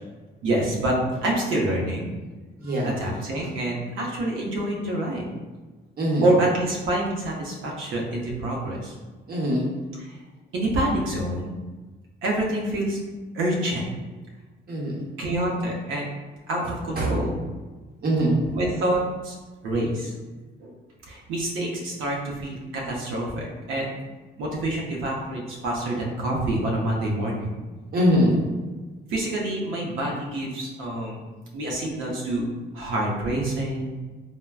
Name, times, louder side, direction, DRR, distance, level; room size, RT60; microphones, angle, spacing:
voice 1, 0.4-1.0 1.2-2.1 2.9-5.3 6.2-8.9 10.0-10.1 10.5-11.5 12.2-13.0 13.3-13.8 15.2-16.1 16.5-17.4 18.5-19.4 19.6-20.1 20.6-20.7 21.1-23.9 24.4-27.5 29.1-31.2 31.5-32.5 32.7-33.9, right 1 dB, 85° right, -2 dB, 0.6 m, -27 dB
voice 2, 2.6-2.9 6.0-6.2 9.3-9.7 14.7-14.9 17.0-17.1 18.0-18.4 27.9-28.4, equal, 50° right, -3 dB, 0.9 m, -22 dB
3.4 x 2.1 x 2.3 m, 1.3 s
cardioid pair, 90°, 20 cm